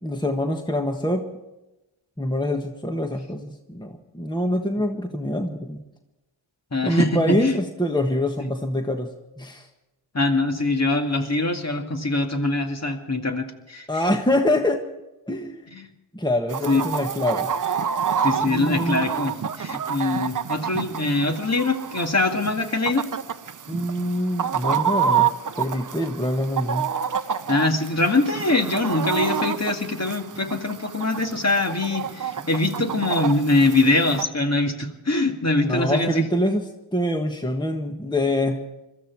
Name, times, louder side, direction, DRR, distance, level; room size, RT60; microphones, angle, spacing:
voice 1, 0.0-1.3 2.2-5.8 6.8-9.1 9.4-9.7 13.9-14.8 15.3-15.7 16.1-17.5 18.4-19.0 23.7-26.9 35.6-36.7 36.9-38.6, left 1 dB, 10° left, 4 dB, 1.4 m, -25 dB
voice 2, 6.7-7.6 10.1-13.9 15.7-15.9 16.7-16.9 18.2-23.1 27.5-36.3, left 2 dB, 30° left, 4 dB, 2.2 m, -23 dB
Chicken rooster, 16.5-34.2, right 7 dB, 40° right, 0.8 m, -28 dB
22.0 x 14.0 x 4.7 m, 0.99 s
cardioid pair, 55°, 48 cm